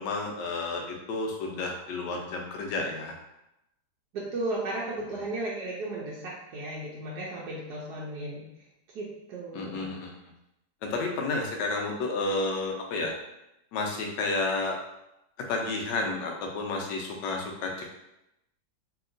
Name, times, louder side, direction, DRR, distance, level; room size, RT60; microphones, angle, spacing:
voice 1, 0.0-3.1 9.5-10.2 10.8-13.1 13.7-14.8 15.5-17.9, left 3 dB, 85° left, 1 dB, 1.3 m, -31 dB
voice 2, 4.1-8.5 8.9-9.9, right 2 dB, 70° right, -5 dB, 1.2 m, -35 dB
3.2 x 2.8 x 2.6 m, 0.87 s
omnidirectional pair, 1.9 m